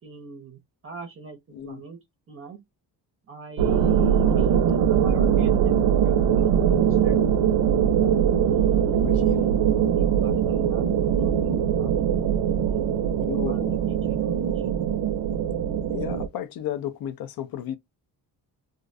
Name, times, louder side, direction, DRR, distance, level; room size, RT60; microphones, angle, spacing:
voice 1, 0.0-2.0 2.3-2.6 3.3-7.2 8.4-12.1 12.6-14.7, right 5 dB, 35° right, 0.6 m, -42 dB
sound 1, 3.6-16.3, right 8 dB, 75° right, 0.5 m, -22 dB
voice 2, 8.9-9.5 13.3-13.8 15.9-17.8, left 10 dB, 60° left, 0.5 m, -33 dB
2.4 x 2.1 x 2.5 m
cardioid pair, 130°, 40 cm